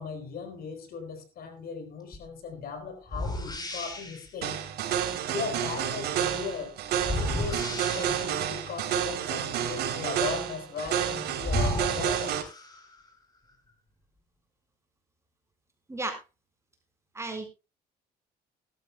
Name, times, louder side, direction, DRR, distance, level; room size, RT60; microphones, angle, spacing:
voice 1, 0.0-4.7 5.3-6.8 7.2-12.4, left 5 dB, 60° left, 8 dB, 3.6 m, -38 dB
sound 1, 2.1-2.3 3.1-4.3 7.0-8.6 10.9-11.0 11.4-13.0, left 1 dB, 25° left, 3.9 m, -33 dB
sound 2, 4.4-12.4, right 9 dB, 75° right, 3.1 m, -30 dB
voice 2, 17.1-17.5, right 2 dB, 15° right, 5 dB, 4.5 m, -33 dB
19.5 x 12.5 x 2.2 m, 0.26 s
cardioid pair, 110°, 17 cm